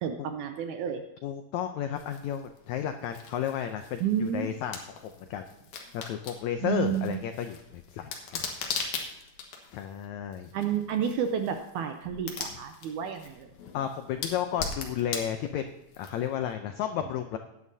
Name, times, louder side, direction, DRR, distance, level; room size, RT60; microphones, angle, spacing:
voice 1, 0.0-1.0 4.0-4.5 6.6-7.2 10.5-13.5, right 8 dB, 80° right, 6 dB, 1.8 m, -30 dB
voice 2, 1.2-4.8 5.3-5.4 5.9-8.4 9.7-10.5 13.7-15.7 16.0-17.4, left 9 dB, 90° left, 7 dB, 1.6 m, -32 dB
sound 1, 2.0-16.5, left 5 dB, 60° left, 2.4 m, -41 dB
17.0 x 10.0 x 2.7 m, 0.89 s
omnidirectional pair, 4.1 m